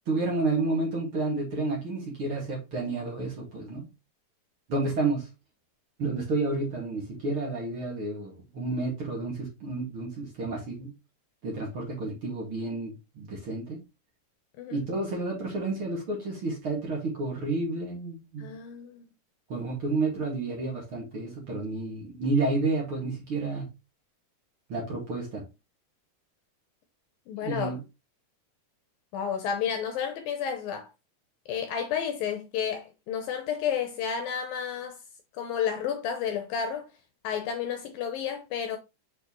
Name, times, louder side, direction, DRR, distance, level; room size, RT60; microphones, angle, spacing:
voice 1, 0.1-3.9 4.7-5.3 6.0-10.9 11.4-13.8 14.7-18.5 19.5-23.7 24.7-25.4 27.4-27.8, right 3 dB, 40° right, 2.4 m, -30 dB
voice 2, 18.4-19.0 27.3-27.8 29.1-30.9 31.5-35.0 35.3-36.9 37.2-38.8, left 7 dB, 75° left, 2.3 m, -31 dB
6.6 x 5.0 x 3.1 m
omnidirectional pair, 4.6 m